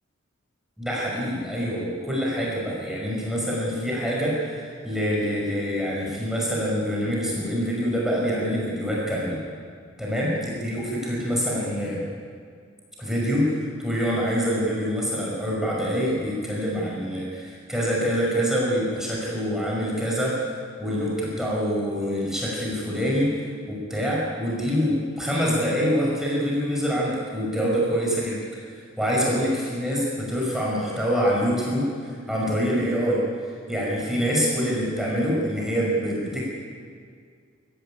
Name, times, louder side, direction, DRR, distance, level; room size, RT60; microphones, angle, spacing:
voice 1, 0.8-9.4 10.0-12.0 13.0-28.7 29.0-33.2 33.7-36.4, equal, ahead, -5 dB, 5.3 m, -25 dB
26.0 x 15.0 x 10.0 m, 2.1 s
head